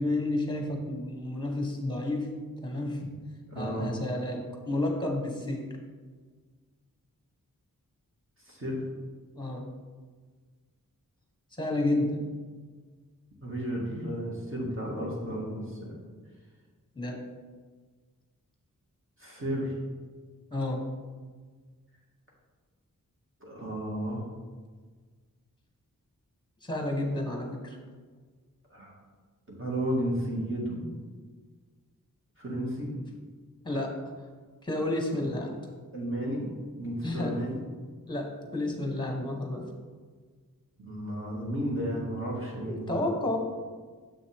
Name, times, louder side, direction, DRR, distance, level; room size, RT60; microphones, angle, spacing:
voice 1, 0.0-3.1 3.5-5.8 9.3-9.7 11.6-12.2 16.9-17.3 20.5-20.8 26.6-27.8 33.0-33.1 33.6-34.0 34.6-35.5 37.0-37.4 38.1-39.7 42.7-43.4, left 1 dB, 15° left, 2 dB, 1.3 m, -31 dB
voice 2, 3.5-3.9 8.5-8.8 13.4-15.9 19.2-19.7 23.4-24.2 28.7-28.9 29.5-30.8 32.4-32.9 35.2-35.3 35.9-36.5 36.8-37.6 40.8-42.9, equal, 35° right, -4 dB, 2.2 m, -33 dB
7.3 x 6.2 x 3.6 m, 1.5 s
wide cardioid pair, 85°, 34 cm